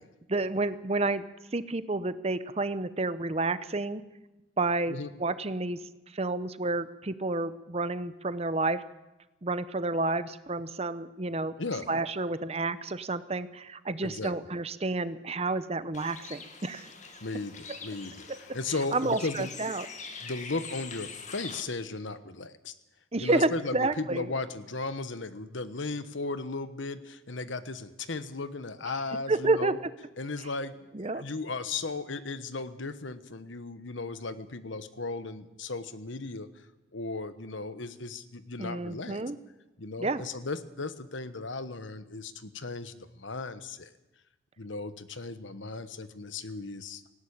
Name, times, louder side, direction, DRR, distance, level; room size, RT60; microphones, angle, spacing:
voice 1, 0.3-1.2 1.5-4.0 4.6-5.8 6.1-8.8 9.4-11.6 11.9-16.9 17.7-17.8 18.9-19.9 23.1-24.3 29.3-29.9 30.9-31.2 38.6-39.4 40.0-40.2, right 2 dB, 30° right, 14 dB, 0.8 m, -30 dB
voice 2, 11.6-11.9 14.0-14.3 17.2-18.3 18.5-19.5 20.2-22.7 23.2-29.8 30.2-30.8 31.1-36.6 36.9-39.2 39.8-43.9 44.6-47.1, left 3 dB, 70° left, 12 dB, 1.2 m, -36 dB
Bird, 15.9-21.6, left 5 dB, 40° left, 1.9 m, -44 dB
18.5 x 16.0 x 8.7 m, 1.0 s
head